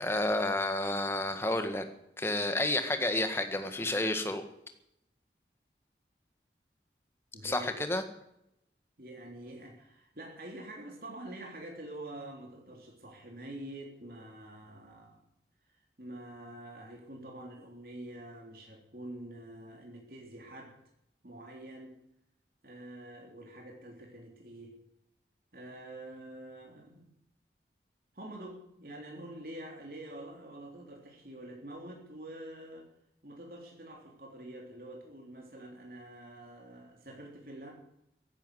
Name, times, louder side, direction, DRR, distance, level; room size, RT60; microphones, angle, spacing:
voice 1, 0.0-1.9 2.2-4.4 7.4-8.0, left 1 dB, 15° left, 7 dB, 1.7 m, -30 dB
voice 2, 7.3-7.9 9.0-15.2 16.0-20.8 21.2-22.0 22.6-24.7 25.5-27.1 28.1-32.9 33.2-37.7, right 1 dB, 55° right, 0 dB, 3.7 m, -46 dB
15.0 x 11.5 x 8.1 m, 0.78 s
head